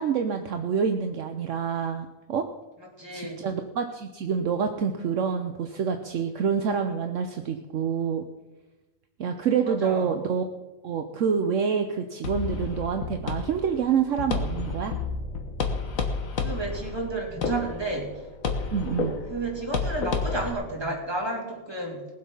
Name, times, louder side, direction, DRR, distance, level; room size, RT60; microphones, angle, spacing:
voice 1, 0.0-2.5 3.1-8.2 9.2-10.5 10.8-14.9 18.7-19.2, right 6 dB, 65° right, 6 dB, 1.1 m, -27 dB
voice 2, 2.8-3.5 9.7-10.1 16.2-18.2 19.3-22.1, right 2 dB, 20° right, -2 dB, 3.0 m, -32 dB
sound 1, 12.2-20.5, left 4 dB, 80° left, 1.7 m, -31 dB
19.5 x 7.7 x 5.5 m, 1.1 s
omnidirectional pair, 1.4 m